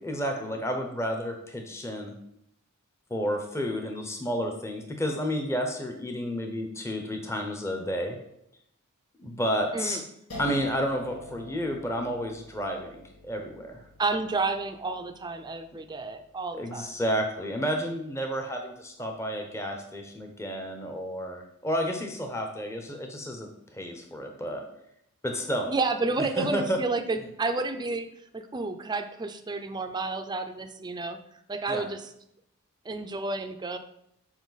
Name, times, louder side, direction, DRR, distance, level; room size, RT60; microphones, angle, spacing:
voice 1, 0.0-2.1 3.1-8.2 9.2-10.0 10.4-13.8 16.5-24.6 25.2-25.7 26.2-26.8 31.7-31.8, equal, 10° left, 3 dB, 0.7 m, -31 dB
sound 1, 10.3-17.2, right 1 dB, 85° left, 1.9 m, -46 dB
voice 2, 14.0-17.0 25.6-28.1 28.3-31.2 31.5-32.1 32.9-33.8, right 3 dB, 20° right, 7 dB, 0.5 m, -30 dB
7.1 x 4.7 x 4.0 m, 0.77 s
head